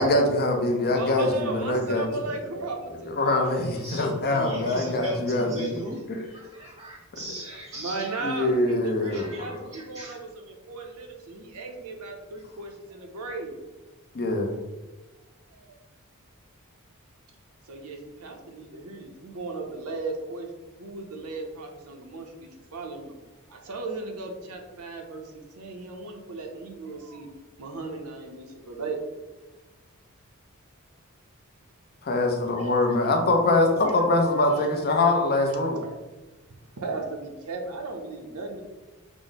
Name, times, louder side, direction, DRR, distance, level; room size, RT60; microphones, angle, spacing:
voice 1, 0.0-2.1 3.1-5.7 8.2-9.6 14.1-14.6 32.0-35.8, left 2 dB, 45° left, 3 dB, 0.6 m, -23 dB
voice 2, 0.9-3.4 7.7-13.6 15.5-15.8 17.7-20.5 20.8-23.2 23.5-27.3 27.6-29.0 34.4-34.9 35.7-35.9 36.8-38.6, right 3 dB, 80° right, 3 dB, 0.7 m, -36 dB
voice 3, 3.6-6.0 6.3-8.4 9.1-10.2 32.5-33.1 33.8-33.9 34.5-34.6 35.0-35.6, right 1 dB, 15° right, -3 dB, 0.5 m, -38 dB
4.8 x 2.1 x 4.0 m, 1.1 s
head